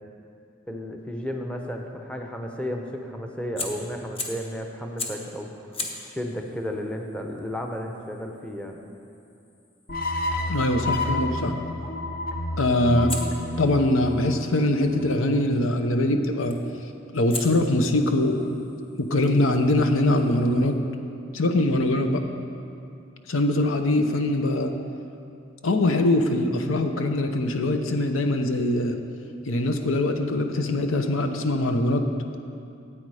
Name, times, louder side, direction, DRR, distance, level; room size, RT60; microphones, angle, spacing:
voice 1, 0.7-5.5 6.1-8.8, equal, 5° left, 2 dB, 0.7 m, -33 dB
Fire, 3.6-4.5 5.0-5.3 5.7-10.6 13.1-15.2 16.5-16.8 17.3-20.7, left 2 dB, 30° left, 1.1 m, -40 dB
sound 1, 9.9-15.1, left 2 dB, 45° left, 0.9 m, -30 dB
voice 2, 10.5-11.5 12.6-13.1 13.6-16.6 17.1-18.4 19.0-20.8 21.3-22.2 23.3-24.7 25.6-29.0 29.4-32.1, left 1 dB, 80° left, 6 dB, 0.8 m, -22 dB
13.5 x 8.8 x 4.9 m, 2.6 s
head